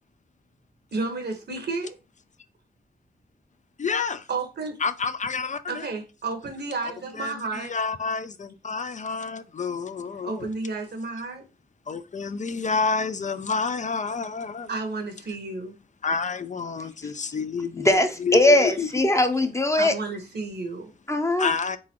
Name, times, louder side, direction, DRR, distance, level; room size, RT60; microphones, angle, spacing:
voice 1, 0.9-2.0 4.3-4.8 5.7-7.7 10.2-11.4 14.7-15.8 16.8-16.9 19.7-20.9, right 3 dB, 80° right, 1.2 m, -32 dB
voice 2, 3.8-4.3 4.8-5.9 7.2-10.5 11.9-14.7 16.0-18.9 21.4-21.8, left 5 dB, 45° left, 0.4 m, -29 dB
voice 3, 17.8-19.9 21.1-21.5, left 1 dB, 15° left, 0.7 m, -20 dB
3.9 x 3.7 x 3.0 m
wide cardioid pair, 95°, 17 cm